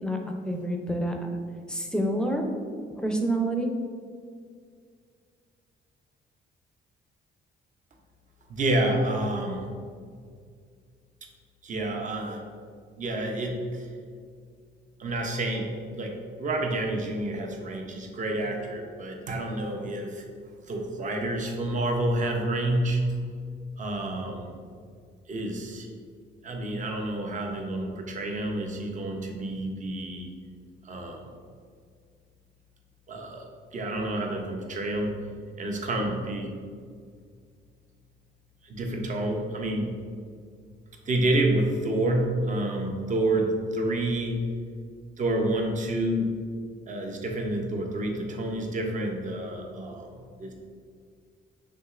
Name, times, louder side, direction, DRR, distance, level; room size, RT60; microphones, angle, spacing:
voice 1, 0.4-1.2 1.7-2.4 3.0-3.7, right 1 dB, 5° left, 2 dB, 0.5 m, -27 dB
voice 2, 8.5-9.7 11.6-12.4 13.0-13.9 15.0-20.2 20.6-23.0 23.8-24.5 25.3-25.9 26.4-30.3 30.8-31.2 33.1-33.5 33.7-35.1 35.6-36.5 38.6-39.9 41.1-44.4 45.2-46.3 46.9-50.1 50.4-50.5, right 1 dB, 40° right, 2 dB, 0.6 m, -29 dB
6.1 x 2.9 x 2.4 m, 2.1 s
cardioid pair, 90°, 20 cm